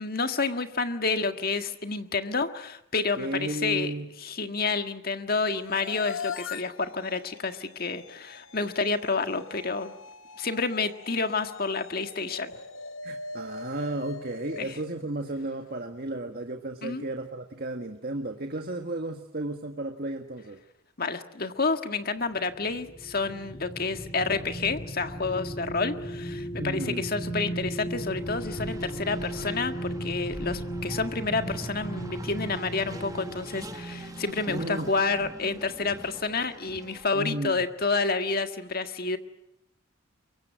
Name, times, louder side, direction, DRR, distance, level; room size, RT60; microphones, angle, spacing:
voice 1, 0.0-3.9 4.2-9.9 10.4-12.6 14.6-14.8 16.8-17.1 21.0-39.2, left 4 dB, 45° left, 8 dB, 1.7 m, -29 dB
voice 2, 3.2-4.1 13.0-20.6 26.6-27.1 34.5-34.9 37.1-37.6, right 2 dB, 45° right, 5 dB, 1.7 m, -33 dB
sound 1, 5.5-15.7, left 5 dB, 70° left, 1.2 m, -42 dB
sound 2, 22.3-35.3 35.7-35.9, right 1 dB, 25° left, 2.2 m, -36 dB
Race car auto racing, 27.8-37.5, right 1 dB, 15° right, 1.2 m, -45 dB
23.5 x 23.5 x 9.3 m, 0.76 s
head